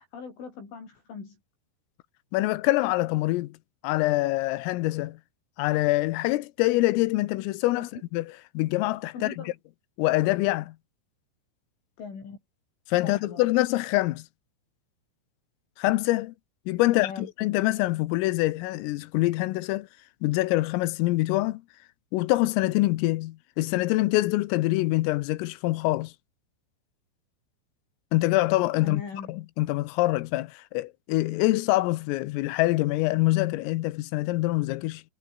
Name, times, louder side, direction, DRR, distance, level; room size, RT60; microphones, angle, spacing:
voice 1, 0.0-1.4 7.8-7.9 9.1-9.5 12.0-12.4 13.0-13.4 16.9-17.3 28.8-29.4, left 5 dB, 65° left, 9.6 m, -40 dB
voice 2, 2.3-3.6 3.8-5.2 5.6-8.3 8.6-9.5 10.0-10.8 12.9-14.3 15.8-16.4 16.7-19.9 20.2-21.6 22.1-26.1 28.1-29.0 29.3-35.0, left 18 dB, 85° left, 3.5 m, -25 dB
omnidirectional pair, 6.0 m